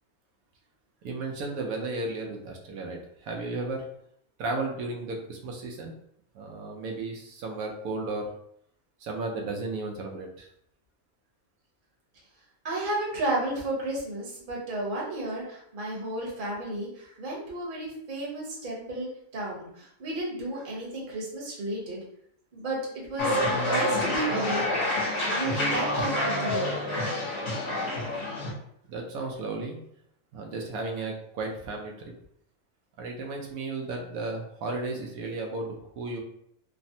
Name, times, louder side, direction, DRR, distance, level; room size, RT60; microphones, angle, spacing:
voice 1, 1.0-3.9 4.4-5.9 6.3-8.3 9.0-10.5 28.9-29.8 30.3-31.9 33.0-36.2, right 3 dB, 85° right, 1 dB, 1.1 m, -34 dB
voice 2, 12.6-22.0 22.5-24.7 25.3-26.8, right 1 dB, 45° right, -3 dB, 0.9 m, -33 dB
sound 1, 23.2-28.5, left 1 dB, 55° left, 1.0 m, -27 dB
3.3 x 2.0 x 2.6 m, 0.70 s
omnidirectional pair, 1.5 m